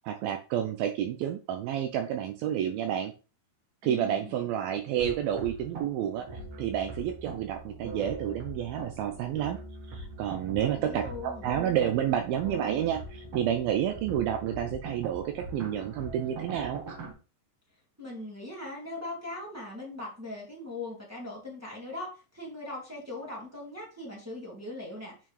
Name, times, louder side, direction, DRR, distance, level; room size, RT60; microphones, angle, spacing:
voice 1, 0.0-3.1 3.8-9.6 9.9-16.8, right 10 dB, 85° right, 6 dB, 2.1 m, -30 dB
voice 2, 3.8-4.4 10.6-11.5 18.0-25.1, left 2 dB, 5° right, -4 dB, 1.3 m, -40 dB
sound 1, 5.0-17.1, right 2 dB, 55° right, 1.8 m, -42 dB
7.7 x 5.5 x 3.3 m, 0.34 s
omnidirectional pair, 5.0 m